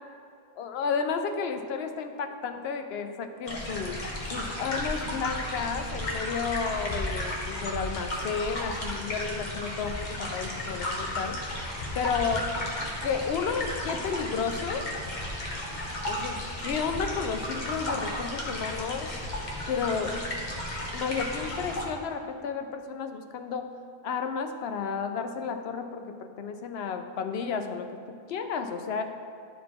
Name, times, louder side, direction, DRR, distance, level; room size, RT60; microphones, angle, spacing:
voice 1, 0.6-4.0 4.3-11.4 11.9-12.5 13.0-14.9 16.1-19.1 19.7-20.2 20.9-23.7 24.0-29.0, left 6 dB, 70° left, 7 dB, 0.8 m, -32 dB
sound 1, 3.5-21.9, left 1 dB, 45° left, 1.1 m, -34 dB
11.0 x 4.0 x 4.7 m, 2.3 s
omnidirectional pair, 1.2 m